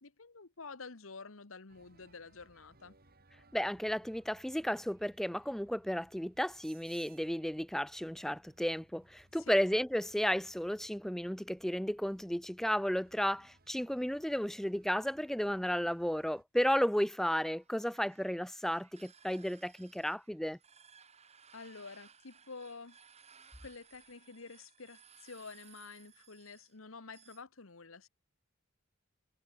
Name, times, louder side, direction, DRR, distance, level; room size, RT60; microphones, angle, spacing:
voice 1, 0.0-2.9 9.5-9.7 21.5-23.0 23.6-28.1, left 4 dB, 80° left, 1.4 m, -49 dB
sound 1, 1.7-16.4, right 3 dB, 50° right, 5.3 m, -66 dB
voice 2, 3.5-20.6, equal, ahead, 0.6 m, -33 dB
sound 2, 17.2-27.4, right 7 dB, 35° right, 4.0 m, -61 dB
head